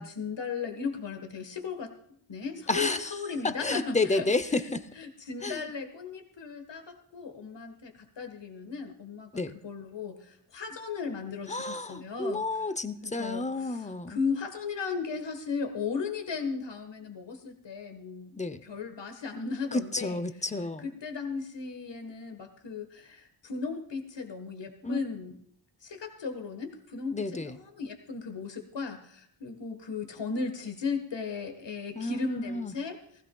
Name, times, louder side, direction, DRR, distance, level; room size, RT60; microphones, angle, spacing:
voice 1, 0.0-1.9 2.3-4.2 4.6-12.4 13.0-20.2 20.8-25.4 25.8-33.0, left 5 dB, 60° left, 6 dB, 1.6 m, -36 dB
voice 2, 2.7-3.2 3.4-4.9 5.4-5.6 9.3-9.6 11.5-14.2 18.4-18.6 19.7-20.9 24.8-25.0 27.1-27.6 31.9-32.7, left 2 dB, 15° left, 12 dB, 0.7 m, -31 dB
19.0 x 15.5 x 2.3 m, 0.66 s
wide cardioid pair, 85°, 49 cm